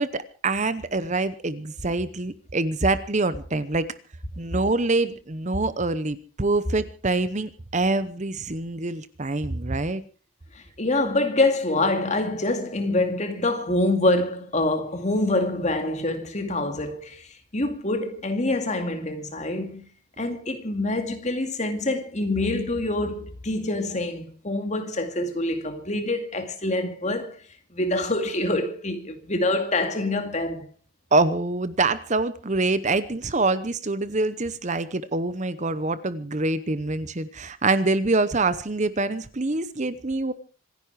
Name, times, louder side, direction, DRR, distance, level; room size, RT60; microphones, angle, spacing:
voice 1, 0.0-3.9 4.4-10.0 31.1-40.3, right 2 dB, 35° right, 0.8 m, -25 dB
voice 2, 10.5-19.9 20.2-27.4 27.7-30.7, left 2 dB, 35° left, 2.3 m, -26 dB
26.0 x 10.5 x 4.8 m
head